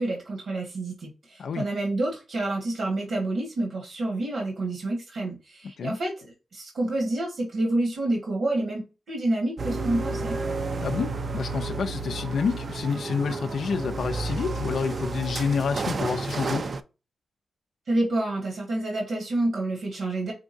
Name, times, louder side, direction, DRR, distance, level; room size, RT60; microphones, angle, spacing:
voice 1, 0.0-6.3 6.5-10.4 17.9-20.3, right 2 dB, 75° right, 1.6 m, -28 dB
sound 1, 9.6-16.8, right 3 dB, 45° right, 0.4 m, -31 dB
voice 2, 10.8-16.6, left 6 dB, 70° left, 0.3 m, -28 dB
5.2 x 3.5 x 2.6 m
cardioid pair, 95°, 0 cm